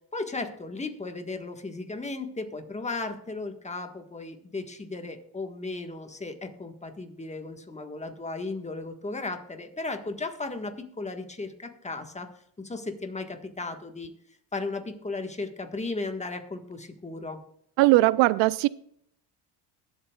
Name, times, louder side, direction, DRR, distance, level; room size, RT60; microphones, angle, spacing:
voice 1, 0.1-12.3 12.6-14.1 14.5-17.4, left 3 dB, 15° left, 6 dB, 1.5 m, -35 dB
voice 2, 17.8-18.7, right 19 dB, 70° right, 20 dB, 0.5 m, -19 dB
21.5 x 8.0 x 2.4 m, 0.70 s
supercardioid pair, 95°, 47 cm